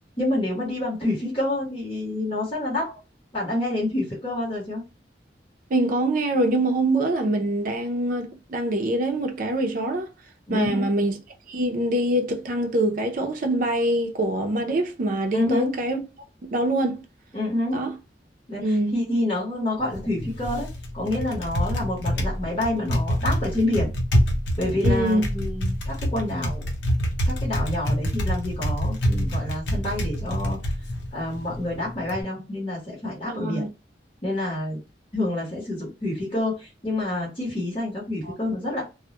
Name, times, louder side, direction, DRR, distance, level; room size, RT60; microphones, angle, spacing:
voice 1, 0.2-2.9 3.3-4.8 10.5-10.9 15.3-15.7 17.3-17.8 18.5-18.6 18.9-20.7 20.9-23.9 24.6-26.6 27.3-30.6 31.1-33.7 34.2-34.8 35.1-38.8, left 1 dB, 30° left, 0.9 m, -28 dB
voice 2, 5.7-10.1 10.5-11.1 11.5-16.0 16.5-17.0 17.7-17.9 18.6-19.0 24.8-25.2 33.3-33.7 38.2-38.3, right 1 dB, 50° right, 0.5 m, -24 dB
Typing, 19.8-32.2, equal, 80° left, 0.6 m, -26 dB
2.2 x 2.0 x 2.8 m
head